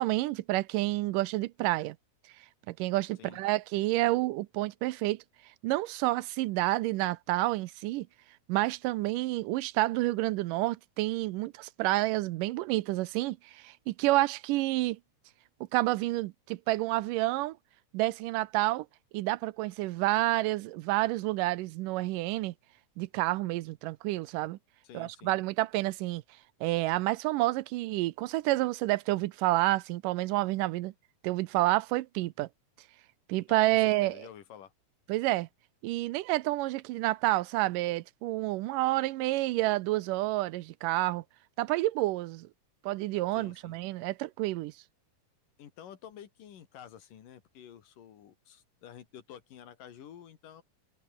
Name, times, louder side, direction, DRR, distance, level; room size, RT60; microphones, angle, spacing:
voice 1, 0.0-2.0 2.7-5.2 5.6-8.1 8.5-15.0 15.7-17.6 17.9-18.9 19.1-22.5 23.0-24.6 24.9-26.2 26.6-30.9 31.2-32.5 33.3-34.3 35.1-35.5 35.8-41.2 41.6-42.5 42.8-44.7, right 18 dB, 80° right, 2.3 m, -29 dB
voice 2, 24.8-25.4 33.5-34.7 43.3-43.8 45.6-50.6, left 9 dB, 80° left, 3.7 m, -50 dB
omnidirectional pair, 3.8 m